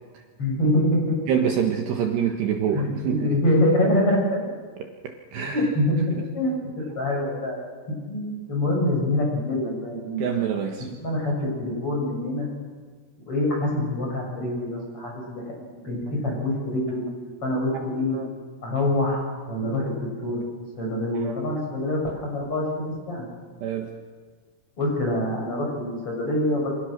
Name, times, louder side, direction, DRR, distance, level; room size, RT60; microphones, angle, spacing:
voice 1, 0.4-1.2 2.7-4.4 5.5-7.6 7.9-10.2 11.0-12.5 13.2-15.4 15.7-17.0 17.4-18.2 18.6-20.4 20.8-23.3 24.8-26.7, left 1 dB, 25° left, -1 dB, 8.0 m, -25 dB
voice 2, 1.3-3.3 5.0-5.6 10.2-10.9 17.7-17.8 18.1-18.3 21.2-21.3 23.6-23.9, right 8 dB, 65° right, 3 dB, 3.2 m, -26 dB
27.0 x 26.5 x 6.7 m, 1.5 s
omnidirectional pair, 5.9 m